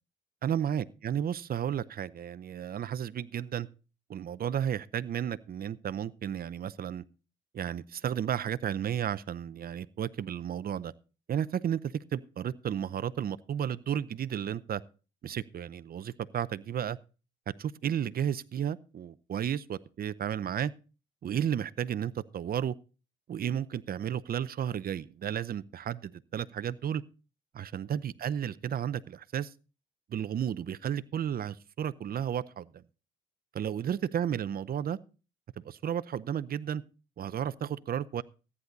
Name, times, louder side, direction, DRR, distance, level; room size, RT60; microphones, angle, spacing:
voice 1, 0.4-3.7 4.1-7.0 7.5-10.9 11.3-14.8 15.2-17.0 17.6-20.7 21.2-22.7 23.3-27.0 27.5-29.5 30.1-32.8 33.5-35.0 35.6-36.8 37.2-38.2, right 9 dB, 50° right, 0.7 m, -33 dB
14.5 x 9.7 x 4.0 m
cardioid pair, 90°, 20 cm